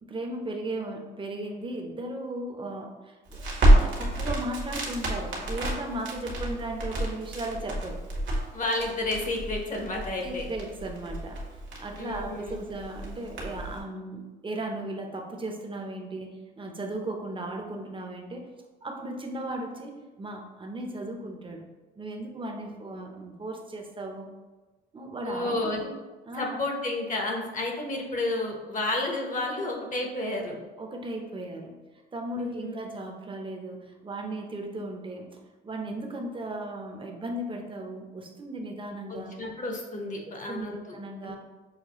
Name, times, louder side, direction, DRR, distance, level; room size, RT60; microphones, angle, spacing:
voice 1, 0.0-8.1 10.2-11.4 11.8-18.5 18.8-21.6 22.0-24.3 24.9-25.9 26.3-26.6 30.8-31.8 32.1-39.3 40.5-41.4, right 1 dB, 25° right, 2 dB, 0.7 m, -36 dB
Crackle, 3.3-13.8, right 1 dB, 70° right, 1.3 m, -28 dB
voice 2, 8.5-10.5 12.0-12.5 25.2-25.8 26.4-30.6 32.4-32.9 39.1-40.8 41.2-41.4, left 2 dB, 40° left, 0 dB, 1.0 m, -31 dB
6.5 x 2.3 x 3.0 m, 1.2 s
cardioid pair, 90°, 20 cm